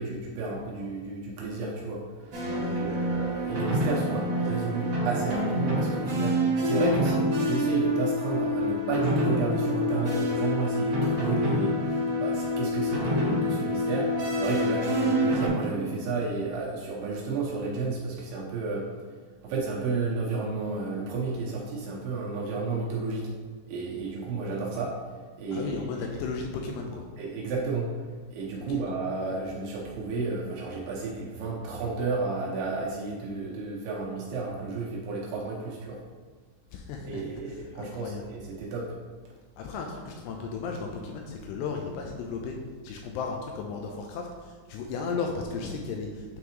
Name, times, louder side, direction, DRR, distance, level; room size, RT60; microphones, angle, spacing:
voice 1, 0.0-18.9 19.4-23.3 23.7-25.8 27.2-27.9 28.3-36.0 37.0-38.9, right 3 dB, 75° right, -4 dB, 2.6 m, -32 dB
sound 1, 2.3-15.5, left 1 dB, 55° right, 1.4 m, -27 dB
voice 2, 2.4-3.1 25.5-27.0 28.6-28.8 36.7-37.2 37.5-38.3 39.6-42.6 42.8-46.4, left 4 dB, 85° left, 1 dB, 2.5 m, -35 dB
9.1 x 3.8 x 3.0 m, 1.5 s
omnidirectional pair, 5.2 m